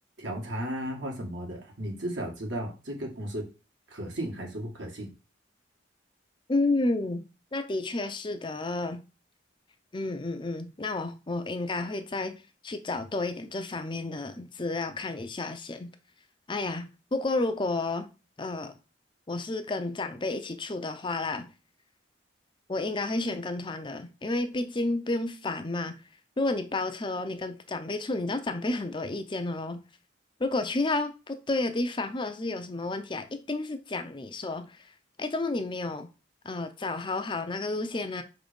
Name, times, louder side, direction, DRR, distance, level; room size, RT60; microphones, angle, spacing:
voice 1, 0.2-3.5 3.9-5.1, right 1 dB, 75° right, 1.9 m, -35 dB
voice 2, 6.5-7.2 7.5-9.0 9.9-15.9 16.5-18.1 18.4-18.7 19.3-21.5 22.7-26.0 26.4-29.8 30.4-34.8 35.2-36.1 36.4-38.2, left 2 dB, 25° left, 0.5 m, -31 dB
5.2 x 3.9 x 5.1 m
head